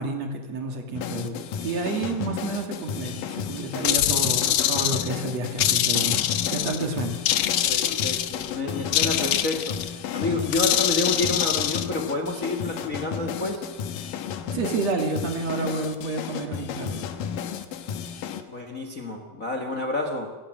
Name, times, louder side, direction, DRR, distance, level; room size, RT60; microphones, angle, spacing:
voice 1, 0.0-6.2 6.5-7.2 14.5-17.1, right 3 dB, 55° right, 4 dB, 3.5 m, -30 dB
sound 1, 0.9-18.4, left 8 dB, 90° left, 3.0 m, -33 dB
sound 2, 3.8-5.1 5.6-6.8 7.3-8.5 8.9-9.9 10.5-11.9, left 11 dB, 65° left, 1.7 m, -24 dB
voice 2, 7.7-13.7 18.5-20.3, left 2 dB, 30° left, 6 dB, 1.7 m, -29 dB
29.0 x 16.0 x 7.8 m, 1.2 s
omnidirectional pair, 3.7 m